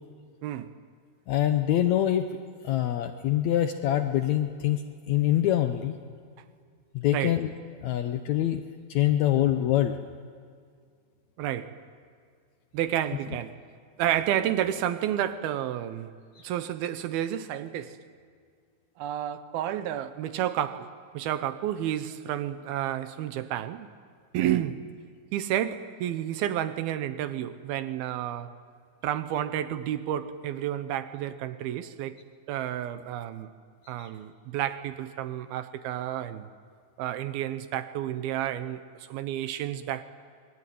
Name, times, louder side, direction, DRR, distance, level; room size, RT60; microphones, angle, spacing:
voice 1, 0.4-0.8 7.1-7.4 11.4-11.8 12.7-13.6 14.0-16.2 16.4-18.0 19.0-23.9 24.3-24.9 25.3-28.6 29.0-32.2 32.5-33.5 33.9-36.5 37.0-40.0, right 11 dB, 80° right, 2.8 m, -31 dB
voice 2, 1.3-2.3 2.6-6.0 6.9-7.5 7.8-8.6 8.9-10.0 16.4-16.5 34.0-34.1, left 12 dB, 85° left, 1.6 m, -25 dB
26.5 x 23.5 x 9.3 m
omnidirectional pair, 4.4 m